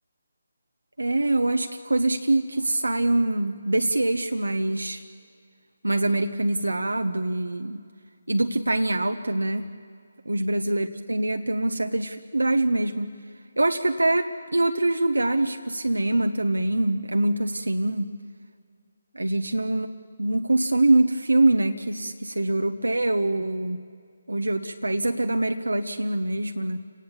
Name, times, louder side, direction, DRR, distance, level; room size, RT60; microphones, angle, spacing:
voice 1, 1.0-5.0 5.8-7.8 8.3-9.6 10.2-13.1 13.6-18.1 19.1-19.9 20.2-23.8 24.3-26.8, right 2 dB, 85° right, 5 dB, 1.0 m, -24 dB
30.0 x 18.5 x 7.3 m, 2.2 s
figure-of-eight pair, 150°, 0 cm